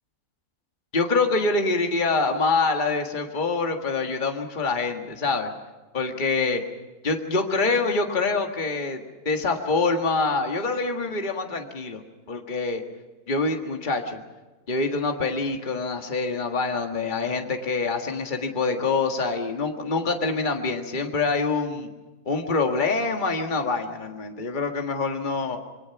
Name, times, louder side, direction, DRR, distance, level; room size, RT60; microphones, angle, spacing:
voice 1, 0.9-5.5 5.9-6.6 7.0-12.0 12.3-12.8 13.3-14.2 14.7-21.9 22.3-25.6, left 3 dB, 35° left, 4 dB, 1.8 m, -25 dB
26.5 x 22.5 x 5.9 m, 1.1 s
omnidirectional pair, 1.6 m